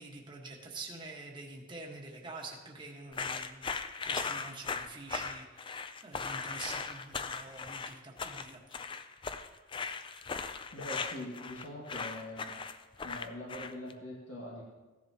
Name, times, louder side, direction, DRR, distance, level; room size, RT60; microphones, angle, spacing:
voice 1, 0.0-3.6 4.0-9.1, right 3 dB, 25° right, -1 dB, 1.4 m, -46 dB
sound 1, 3.1-13.9, left 5 dB, 25° left, 0.4 m, -38 dB
voice 2, 10.7-12.5 13.0-14.6, left 1 dB, 65° left, -5 dB, 2.0 m, -43 dB
15.5 x 10.5 x 2.9 m, 1.2 s
head